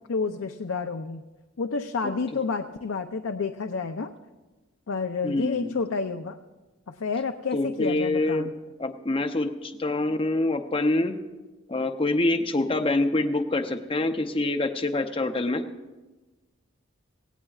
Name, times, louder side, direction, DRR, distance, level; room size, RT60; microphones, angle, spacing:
voice 1, 0.1-1.2 1.6-4.1 4.9-6.4 6.9-8.5, left 4 dB, 80° left, 6 dB, 0.5 m, -29 dB
voice 2, 5.2-5.7 7.5-8.5 8.8-11.2 11.7-15.6, left 2 dB, 25° left, 6 dB, 0.6 m, -26 dB
17.5 x 17.5 x 2.4 m, 1.2 s
head